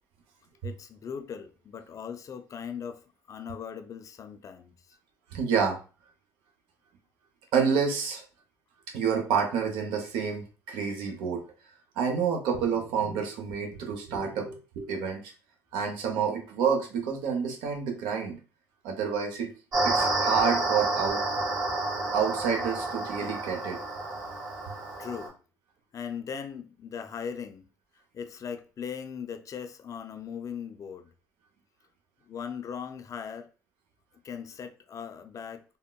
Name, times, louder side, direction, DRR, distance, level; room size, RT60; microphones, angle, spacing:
voice 1, 0.6-3.0 3.3-5.0 25.0-25.4 25.9-27.7 28.1-31.1 32.3-33.5 34.2-35.6, left 7 dB, 40° left, 0.4 m, -39 dB
voice 2, 5.3-5.8 7.5-8.2 8.9-11.4 12.0-15.2 15.7-18.4 18.8-19.5 19.8-21.2 22.1-23.8, right 6 dB, 75° right, 0.8 m, -28 dB
sound 1, 19.7-25.3, right 2 dB, 55° right, 1.5 m, -29 dB
3.5 x 2.1 x 2.2 m
supercardioid pair, 75°, 8 cm